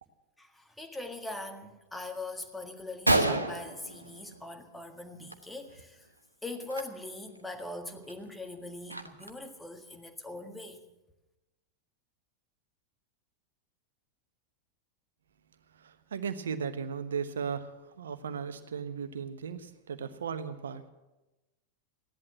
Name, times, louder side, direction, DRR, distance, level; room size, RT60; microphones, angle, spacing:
voice 1, 0.4-6.1 6.4-10.8, left 2 dB, 5° left, 6 dB, 1.6 m, -41 dB
Gunshot gunfire, 2.4-2.5 2.8-2.9 3.1-4.7 5.0-5.4 5.6-5.8 6.6-6.8 7.4-7.5 7.9-9.5, right 2 dB, 85° right, 1.1 m, -30 dB
voice 2, 15.7-20.9, right 6 dB, 65° right, 10 dB, 1.1 m, -36 dB
16.0 x 11.0 x 7.5 m, 1.1 s
figure-of-eight pair, 90°, 0 cm